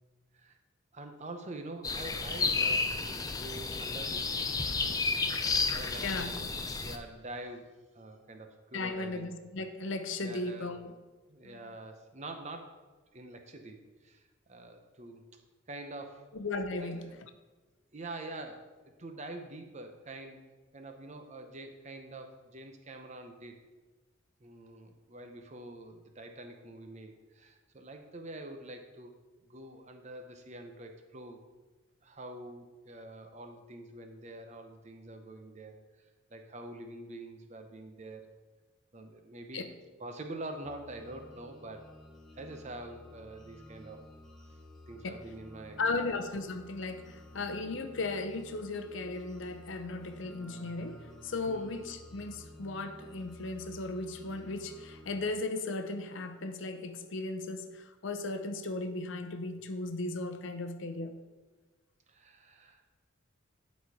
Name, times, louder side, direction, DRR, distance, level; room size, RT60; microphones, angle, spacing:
voice 1, 0.9-4.5 4.8-5.1 5.7-6.6 6.8-7.7 7.9-9.3 10.2-10.8 11.3-12.8 13.1-14.2 14.5-15.2 15.7-16.3 16.8-17.0 17.9-18.7 19.0-20.5 20.7-23.6 24.4-29.1 29.4-31.4 32.0-35.8 36.3-38.3 38.9-39.7 40.0-41.9 42.4-44.1 44.9-46.1 47.3-47.6 51.5-51.8 62.1-63.0, right 2 dB, 35° right, 0.8 m, -45 dB
sound 1, 1.8-7.0, left 4 dB, 20° left, 0.4 m, -31 dB
voice 2, 6.0-6.6 8.7-10.9 11.4-11.6 16.3-17.0 39.5-39.7 45.0-45.2 45.8-61.2, left 3 dB, 70° left, 0.7 m, -36 dB
sound 2, 40.6-55.3, left 1 dB, ahead, 1.0 m, -53 dB
11.0 x 4.2 x 4.8 m
head